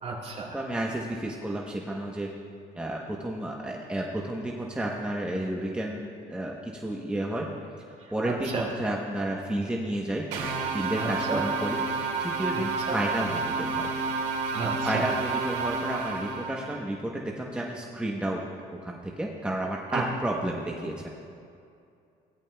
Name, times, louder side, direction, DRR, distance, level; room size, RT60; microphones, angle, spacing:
voice 1, 0.0-0.6 8.0-8.6 11.0-11.4 12.5-13.0 14.5-15.1 19.9-20.0, right 4 dB, 40° right, -2 dB, 2.5 m, -33 dB
voice 2, 0.5-2.3 2.8-7.5 8.1-10.2 10.7-11.8 12.2-13.9 14.6-18.4 18.7-21.1, right 1 dB, 5° right, -2 dB, 0.9 m, -31 dB
sound 1, 10.3-16.8, right 4 dB, 85° right, 2.4 m, -30 dB
17.0 x 10.5 x 2.3 m, 2.4 s
cardioid pair, 110°, 17 cm